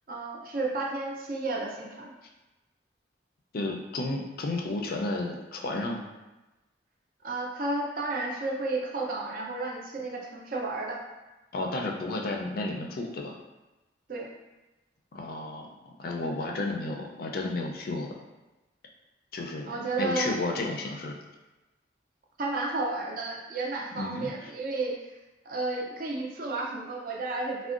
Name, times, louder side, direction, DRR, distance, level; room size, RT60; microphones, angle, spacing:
voice 1, 0.1-2.1 7.2-11.0 14.1-14.3 19.7-20.3 22.4-24.9 25.5-27.7, right 2 dB, 50° right, -1 dB, 0.4 m, -32 dB
voice 2, 3.5-6.0 11.5-13.4 15.1-18.1 19.3-21.2 24.0-24.3, left 2 dB, 50° left, 1 dB, 0.4 m, -32 dB
3.5 x 2.2 x 2.4 m, 1.1 s
head